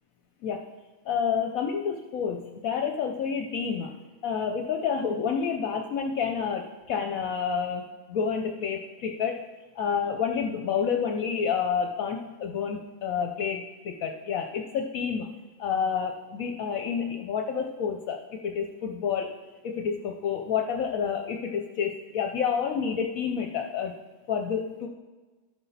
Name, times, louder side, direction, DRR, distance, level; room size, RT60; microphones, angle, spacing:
voice 1, 1.1-3.9 4.2-9.4 9.8-15.3 15.6-18.2 18.4-19.3 19.6-23.9 24.3-24.9, left 6 dB, 70° left, 3 dB, 1.0 m, -29 dB
13.0 x 5.8 x 4.1 m, 1.3 s
omnidirectional pair, 1.6 m